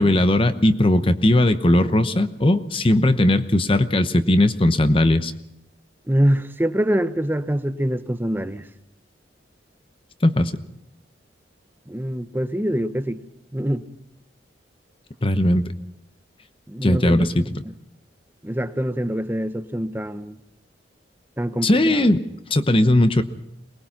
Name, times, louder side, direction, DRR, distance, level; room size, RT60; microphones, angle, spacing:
voice 1, 0.0-5.3 10.2-10.5 15.2-15.6 16.8-17.5 21.6-22.2 22.5-23.2, left 1 dB, 30° left, 0.9 m, -18 dB
voice 2, 6.1-8.7 11.9-13.2 13.5-13.8 16.7-17.3 18.4-20.4 21.4-22.1, equal, 10° right, 0.8 m, -24 dB
23.0 x 20.5 x 5.9 m
head